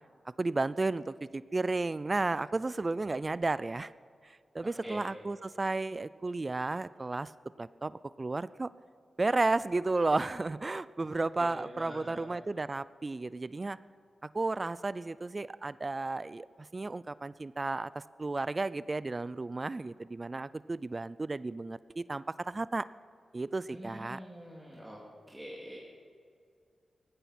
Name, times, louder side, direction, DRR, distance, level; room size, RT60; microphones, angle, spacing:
voice 1, 0.4-3.9 4.2-7.3 7.6-8.7 9.2-13.8 14.3-22.9 23.3-24.2, right 3 dB, 35° right, 17 dB, 0.4 m, -33 dB
voice 2, 4.6-5.0 11.0-12.2 23.7-25.0 25.3-25.8, equal, 10° right, -4 dB, 2.7 m, -45 dB
18.0 x 15.0 x 4.4 m, 2.2 s
cardioid pair, 65°, 0 cm